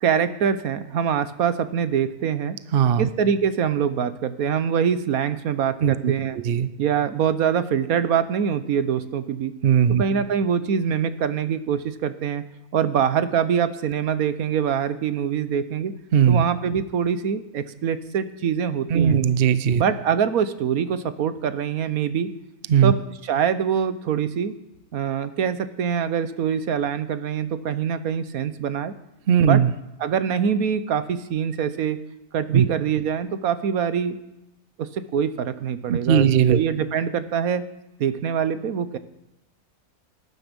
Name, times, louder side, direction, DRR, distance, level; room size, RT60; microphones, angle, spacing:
voice 1, 0.0-2.6 3.0-6.4 6.8-9.5 10.0-12.4 12.7-15.9 16.3-19.2 19.7-22.3 22.8-24.6 24.9-28.9 29.4-29.6 30.0-32.0 32.3-34.2 34.8-37.6 38.0-39.0, right 7 dB, 70° right, 12 dB, 1.3 m, -24 dB
voice 2, 2.7-3.1 5.8-6.1 6.4-6.7 9.6-10.0 16.1-16.4 18.9-19.8 22.7-22.9 29.3-29.7 32.5-32.6 35.9-36.6, right 8 dB, 55° right, 14 dB, 0.6 m, -18 dB
18.5 x 10.5 x 5.3 m, 0.90 s
omnidirectional pair, 1.6 m